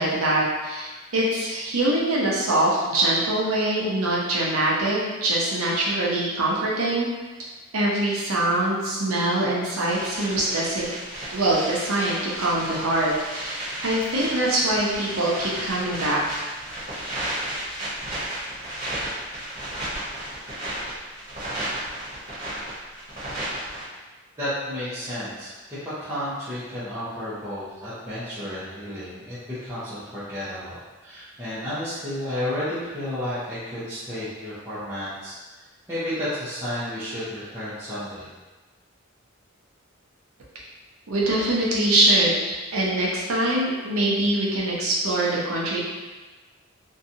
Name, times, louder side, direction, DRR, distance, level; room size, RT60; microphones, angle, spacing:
voice 1, 0.0-7.1 7.7-10.9 11.3-16.5 41.1-45.8, right 1 dB, 85° right, -4 dB, 0.7 m, -23 dB
sound 1, 9.9-23.8, right 1 dB, 35° right, 1.0 m, -33 dB
voice 2, 24.4-35.3 35.9-38.3, left 1 dB, 10° right, -14 dB, 0.6 m, -32 dB
2.7 x 2.3 x 2.6 m, 1.3 s
head